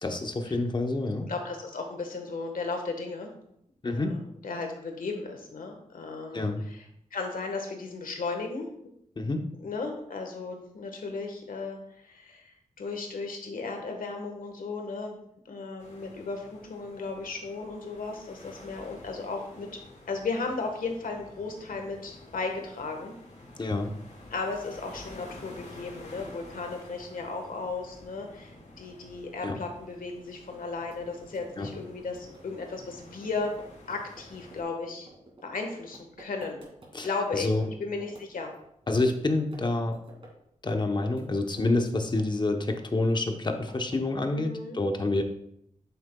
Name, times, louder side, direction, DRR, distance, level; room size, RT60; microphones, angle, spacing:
voice 1, 0.0-1.3 3.8-4.2 6.3-6.6 9.2-9.5 23.6-23.9 29.4-29.6 31.6-31.7 36.9-37.1 37.3-37.6 38.9-40.0 40.6-45.2, left 2 dB, 35° left, 5 dB, 0.9 m, -28 dB
voice 2, 1.3-3.3 3.8-6.8 7.1-8.7 9.6-15.2 15.4-19.7 20.1-23.1 24.3-33.5 33.9-35.1 35.4-36.6 37.0-38.5 44.3-44.8, left 4 dB, 85° left, 3 dB, 1.4 m, -35 dB
sound 1, 15.8-34.6, left 1 dB, 55° left, 2.1 m, -50 dB
sound 2, 30.8-37.7 38.0-39.1 39.4-40.3 40.6-42.4 42.7-44.1, right 2 dB, 40° right, 2.3 m, -52 dB
8.4 x 7.3 x 2.3 m, 0.74 s
wide cardioid pair, 100°, 14 cm